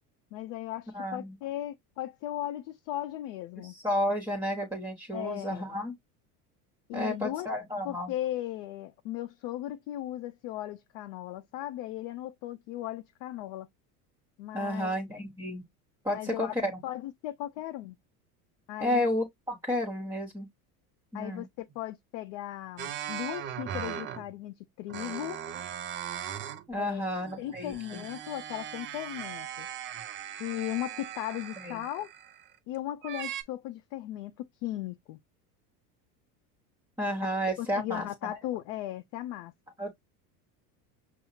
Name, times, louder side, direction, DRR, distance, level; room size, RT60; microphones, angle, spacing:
voice 1, 0.3-3.8 5.1-5.6 6.9-7.5 7.8-13.7 14.4-15.0 16.1-16.6 16.8-18.0 18.7-19.1 21.1-25.4 26.8-27.0 27.4-29.7 30.4-32.1 32.7-35.2 37.6-39.5, left 14 dB, 55° left, 0.5 m, -37 dB
voice 2, 0.9-1.4 3.6-5.9 6.9-8.1 14.5-15.6 16.0-16.8 18.8-20.5 21.1-21.5 26.7-28.0 31.6-31.8 37.0-38.4 39.8-39.9, left 1 dB, 10° right, 1.0 m, -32 dB
sound 1, 22.8-24.3 24.9-26.7 27.0-32.6 33.0-33.4, right 9 dB, 30° right, 0.4 m, -39 dB
5.4 x 2.0 x 2.8 m
supercardioid pair, 100°, 47 cm